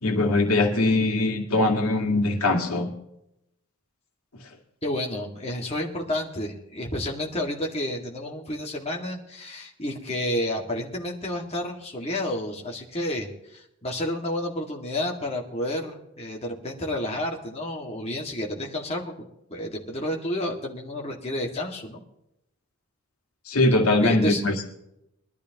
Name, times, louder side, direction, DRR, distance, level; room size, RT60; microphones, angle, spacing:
voice 1, 0.0-2.9 23.5-24.6, left 2 dB, 85° left, 2 dB, 2.0 m, -22 dB
voice 2, 4.8-22.0 24.0-24.4, left 1 dB, 30° left, -1 dB, 2.0 m, -30 dB
22.0 x 12.0 x 3.0 m, 0.82 s
head